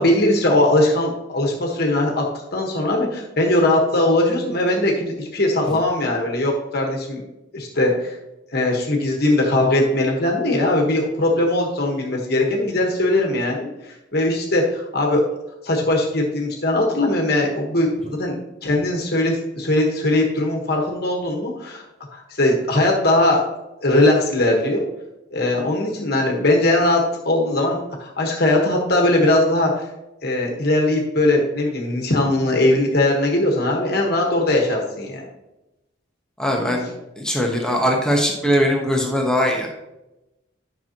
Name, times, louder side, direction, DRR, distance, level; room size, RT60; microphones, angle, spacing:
voice 1, 0.0-2.2 2.5-7.2 7.5-8.1 8.5-13.7 14.1-15.2 15.6-21.8 22.1-23.4 23.8-24.8 25.3-29.8 30.2-35.3, left 1 dB, 55° left, 0 dB, 1.4 m, -20 dB
voice 2, 36.4-36.9 37.2-39.7, equal, 5° left, 0 dB, 1.1 m, -20 dB
10.5 x 6.1 x 2.9 m, 0.95 s
head